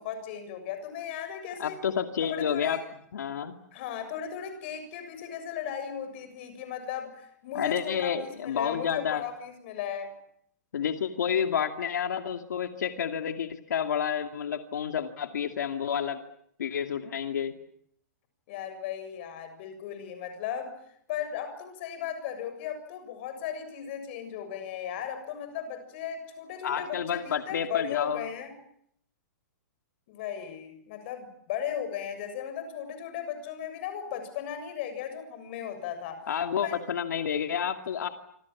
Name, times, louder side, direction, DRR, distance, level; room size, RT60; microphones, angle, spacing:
voice 1, 0.0-1.8 2.2-2.8 3.7-10.1 18.5-20.7 21.1-28.5 30.1-36.3 36.6-36.8, left 9 dB, 40° left, 9 dB, 7.1 m, -36 dB
voice 2, 1.6-2.8 3.1-3.5 7.5-9.2 10.7-16.2 16.6-17.5 26.6-28.3 36.3-38.1, left 8 dB, 90° left, 6 dB, 2.4 m, -30 dB
27.0 x 27.0 x 7.3 m, 0.69 s
hypercardioid pair, 165°, 9 cm